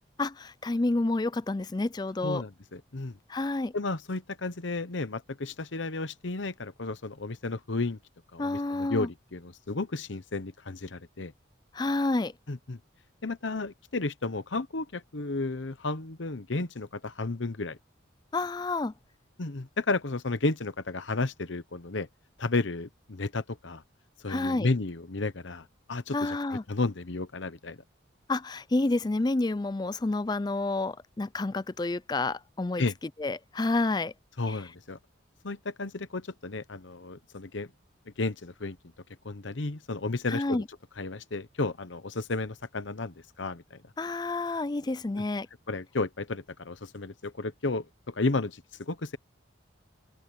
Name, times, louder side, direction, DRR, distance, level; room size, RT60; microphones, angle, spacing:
voice 1, 0.2-2.4 3.3-3.7 8.4-9.1 11.7-12.3 18.3-18.9 24.3-24.7 26.1-26.6 28.3-32.8 33.2-34.1 34.5-34.6 40.3-40.6 44.0-45.5, left 2 dB, 20° left, 0.4 m, -29 dB
voice 2, 2.2-3.2 3.7-8.0 8.3-11.3 12.5-12.8 13.2-17.8 19.4-22.1 22.4-23.8 24.2-27.8 32.8-32.9 34.4-35.0 35.4-37.7 38.2-38.8 39.2-40.6 41.0-43.8 45.2-45.3 45.7-49.2, left 3 dB, 75° left, 1.0 m, -33 dB
open air
head